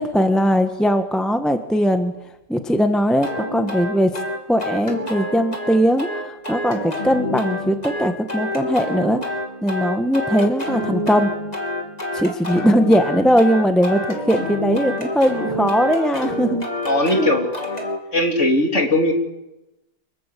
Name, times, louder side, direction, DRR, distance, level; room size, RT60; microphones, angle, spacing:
voice 1, 0.0-2.1 2.5-4.2 4.5-9.3 9.6-11.3 12.1-16.6 17.2-17.3, equal, ahead, 7 dB, 1.3 m, -19 dB
sound 1, 3.2-18.0, left 1 dB, 20° left, 3.3 m, -28 dB
voice 2, 16.8-17.4 18.1-19.1, left 1 dB, 40° left, 3 dB, 3.7 m, -19 dB
25.5 x 22.5 x 8.5 m, 0.99 s
omnidirectional pair, 1.8 m